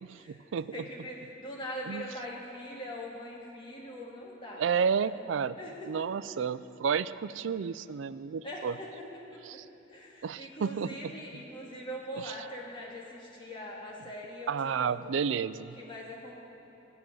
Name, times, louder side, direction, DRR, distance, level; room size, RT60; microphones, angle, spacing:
voice 1, 0.0-0.9 1.9-2.1 4.6-5.6 5.9-8.8 9.4-9.6 10.2-11.1 12.2-12.3 14.5-15.8, right 6 dB, 75° right, 16 dB, 0.4 m, -31 dB
voice 2, 0.7-4.6 5.0-5.2 5.6-5.9 8.4-8.9 9.3-9.6 9.9-14.5 14.8-15.2 15.5-16.3, equal, 25° left, -4 dB, 2.2 m, -42 dB
13.5 x 7.7 x 9.0 m, 2.9 s
head